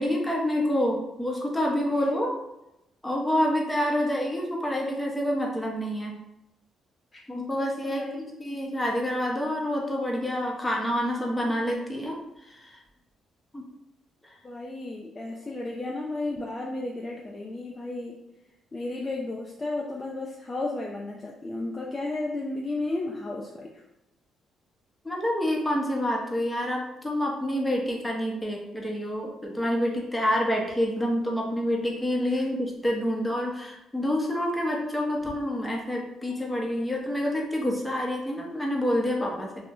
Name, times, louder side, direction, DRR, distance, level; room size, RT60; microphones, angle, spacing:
voice 1, 0.0-2.3 3.0-6.1 7.3-8.0 8.4-12.8 13.5-13.6 25.0-39.6, equal, 10° left, -1 dB, 0.8 m, -27 dB
voice 2, 7.8-8.3 14.4-18.2 18.7-23.8 32.3-32.5, left 2 dB, 30° left, -2 dB, 0.4 m, -33 dB
2.4 x 2.1 x 3.5 m, 0.87 s
cardioid pair, 75°, 0 cm